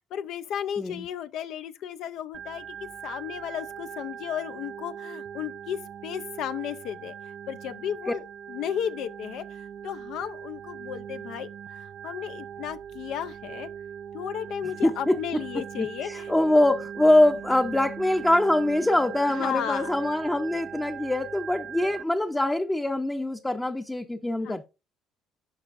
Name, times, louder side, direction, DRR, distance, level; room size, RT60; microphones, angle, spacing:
voice 1, 0.1-7.1 7.5-13.7 14.1-16.3 19.3-19.9 23.6-23.7 24.4-24.6, left 9 dB, 70° left, 0.5 m, -34 dB
Organ, 2.3-22.0, right 8 dB, 55° right, 0.4 m, -40 dB
voice 2, 14.8-15.4 15.8-24.7, left 1 dB, 10° left, 0.6 m, -24 dB
11.5 x 5.2 x 2.5 m
supercardioid pair, 95°, 0 cm